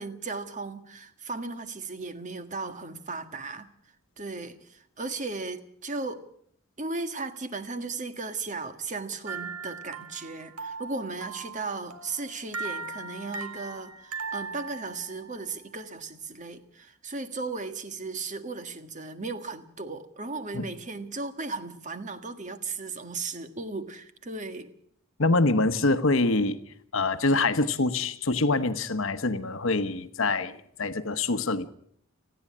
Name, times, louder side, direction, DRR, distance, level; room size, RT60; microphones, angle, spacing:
voice 1, 0.0-3.7 4.2-6.2 6.8-24.7, right 3 dB, 35° right, 1.7 m, -36 dB
sound 1, 9.3-15.5, right 4 dB, 85° right, 2.0 m, -39 dB
voice 2, 25.2-26.6 26.9-31.7, left 3 dB, 65° left, 1.1 m, -25 dB
30.0 x 10.5 x 8.7 m
head